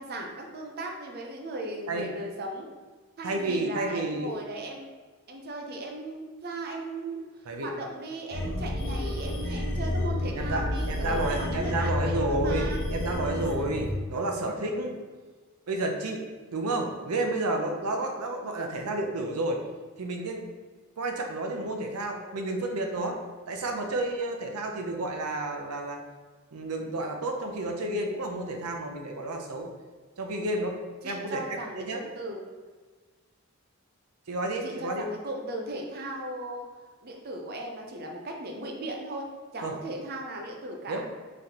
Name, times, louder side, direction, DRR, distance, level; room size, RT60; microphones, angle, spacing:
voice 1, 0.0-2.7 3.2-4.9 5.3-7.3 7.6-12.8 31.0-32.4 34.6-36.6 37.0-39.3 39.5-41.0, right 1 dB, 45° right, 1 dB, 0.5 m, -37 dB
voice 2, 3.2-4.3 7.5-7.7 10.3-14.9 15.7-16.2 16.5-19.6 20.0-20.4 21.0-23.2 23.5-26.0 26.5-29.7 30.2-30.8 31.0-32.0 34.3-35.1 39.6-39.8 40.9-41.0, right 2 dB, 85° right, 2 dB, 0.6 m, -31 dB
sound 1, 8.3-13.9, left 1 dB, 60° left, 0.8 m, -30 dB
4.0 x 3.2 x 2.9 m, 1.4 s
head